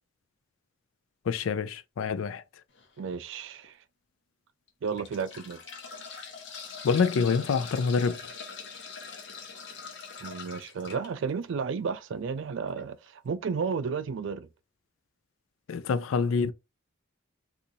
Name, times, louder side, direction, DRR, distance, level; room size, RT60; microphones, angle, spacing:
voice 1, 1.3-2.4 6.8-8.2 15.7-16.5, left 5 dB, 90° left, 0.4 m, -26 dB
sound 1, 2.7-3.0 3.6-3.7 4.7-11.1 12.7-12.8 13.1-13.2, left 5 dB, 60° left, 0.8 m, -43 dB
voice 2, 3.0-3.7 4.8-5.6 10.2-14.5, right 5 dB, 65° right, 0.4 m, -32 dB
3.9 x 2.4 x 2.7 m
head